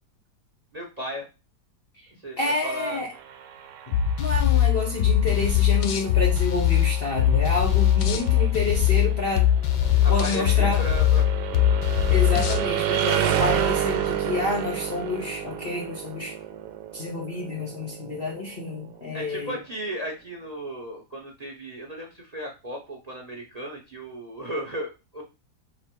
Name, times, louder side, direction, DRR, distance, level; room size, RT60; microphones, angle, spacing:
voice 1, 0.7-1.3 2.2-3.0 10.0-11.8 19.1-25.2, equal, 30° right, 1 dB, 0.8 m, -35 dB
voice 2, 2.4-3.1 3.9-9.5 10.1-10.8 12.1-16.3 16.9-19.6, left 3 dB, 50° left, 0 dB, 0.8 m, -29 dB
sound 1, 3.1-18.9, right 9 dB, 85° right, 1.3 m, -31 dB
sound 2, 3.9-12.6, left 11 dB, 80° left, 1.2 m, -21 dB
4.2 x 2.8 x 4.4 m, 0.28 s
omnidirectional pair, 1.8 m